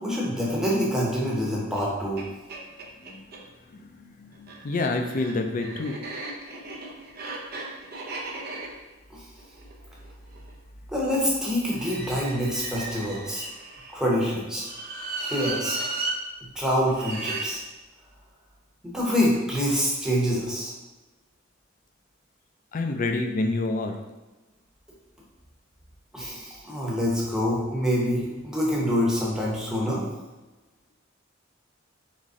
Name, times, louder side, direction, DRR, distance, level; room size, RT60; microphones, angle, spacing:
voice 1, 0.0-2.3 9.1-9.2 10.9-13.4 13.9-14.6 15.2-15.8 16.5-17.6 18.8-20.7 26.1-30.0, equal, 5° right, -5 dB, 0.9 m, -26 dB
sound 1, 1.7-1.8 2.2-2.3 2.5-3.4 4.3-10.5 11.7-13.9 14.6-16.2 16.9-17.5, right 2 dB, 50° right, 0.7 m, -35 dB
voice 2, 3.1-6.0 22.7-23.9, left 2 dB, 40° left, 4 dB, 0.4 m, -28 dB
4.0 x 3.1 x 3.6 m, 1.1 s
head